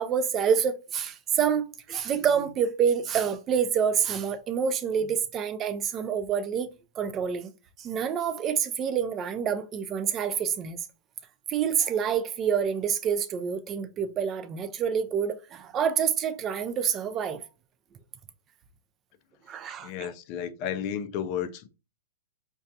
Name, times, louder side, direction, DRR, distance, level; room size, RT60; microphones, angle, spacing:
voice 1, 0.0-6.7 7.0-7.5 7.8-10.8 11.5-17.5 19.5-20.1, right 7 dB, 20° right, 0.4 m, -27 dB
voice 2, 19.8-21.7, left 9 dB, 35° left, 0.4 m, -32 dB
4.7 x 2.3 x 2.7 m
hypercardioid pair, 150°, 0 cm